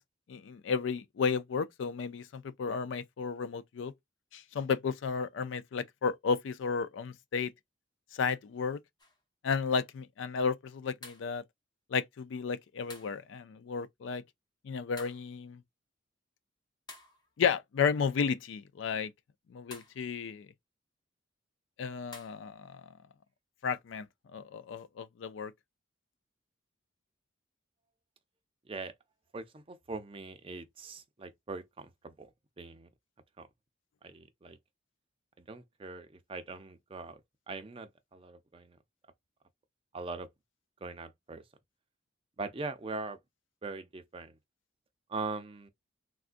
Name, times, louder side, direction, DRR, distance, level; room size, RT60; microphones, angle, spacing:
voice 1, 0.3-3.9 4.3-7.5 8.1-8.8 9.4-11.4 11.9-14.2 14.6-15.6 17.4-19.1 19.5-20.5 21.8-22.9 23.6-24.1 24.3-25.5, left 5 dB, 75° left, 0.4 m, -33 dB
sound 1, 9.0-9.2 11.0-11.3 12.9-13.2 15.0-15.3 16.9-17.4 19.7-20.0 22.1-22.4, left 2 dB, 20° left, 0.7 m, -50 dB
voice 2, 29.3-32.3 32.6-32.9 33.4-33.5 34.0-34.6 35.4-37.2 37.5-38.8 39.9-40.3 40.8-41.4 42.4-43.2 43.6-44.4 45.1-45.7, right 3 dB, 30° right, 0.5 m, -41 dB
3.6 x 2.4 x 2.5 m
head